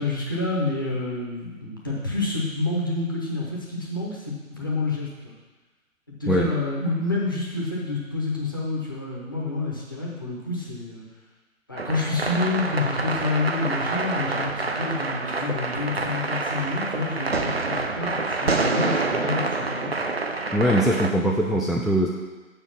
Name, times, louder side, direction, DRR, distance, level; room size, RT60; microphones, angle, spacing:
voice 1, 0.0-5.3 6.1-11.1 11.7-19.9, left 3 dB, 15° left, -4 dB, 0.8 m, -28 dB
sound 1, 11.8-21.1, right 3 dB, 45° right, 0.6 m, -27 dB
voice 2, 20.5-22.1, equal, ahead, -2 dB, 0.3 m, -21 dB
7.1 x 5.0 x 7.1 m, 1.2 s
figure-of-eight pair, 155°, 41 cm